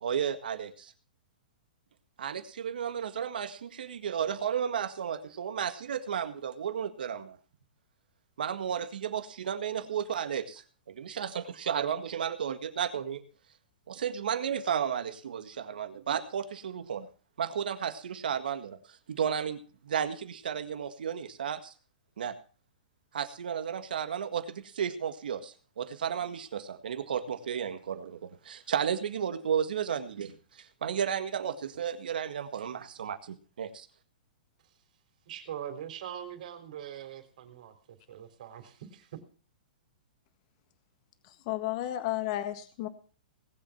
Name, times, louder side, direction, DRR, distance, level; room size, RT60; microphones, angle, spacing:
voice 1, 0.0-0.9 2.2-7.4 8.4-13.2 13.9-17.1 17.4-21.7 22.2-22.3 23.1-33.9, right 8 dB, 80° right, 9 dB, 1.7 m, -33 dB
voice 2, 35.3-37.7 38.1-39.2, right 10 dB, 60° right, 7 dB, 3.4 m, -42 dB
voice 3, 41.2-42.9, left 14 dB, 45° left, 9 dB, 1.6 m, -33 dB
19.0 x 7.7 x 5.8 m, 0.39 s
hypercardioid pair, 150°, 5 cm